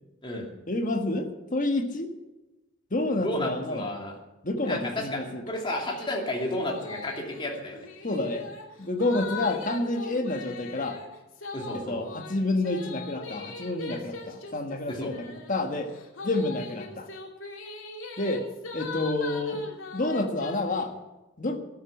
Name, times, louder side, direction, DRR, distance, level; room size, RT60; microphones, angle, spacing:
voice 1, 0.7-2.1 2.9-3.9 4.4-5.4 8.0-8.5 8.8-11.0 11.7-15.9 16.2-17.1 18.2-18.5 18.7-19.6 19.9-20.9 21.4-21.6, left 2 dB, 40° left, 5 dB, 1.5 m, -29 dB
voice 2, 3.2-4.1 4.7-7.8 11.5-12.0 14.9-15.1, left 1 dB, 25° left, -1 dB, 2.7 m, -32 dB
sound 1, 5.9-6.1 6.4-20.8, left 3 dB, 70° left, 2.5 m, -40 dB
13.0 x 10.5 x 7.3 m, 1.0 s
head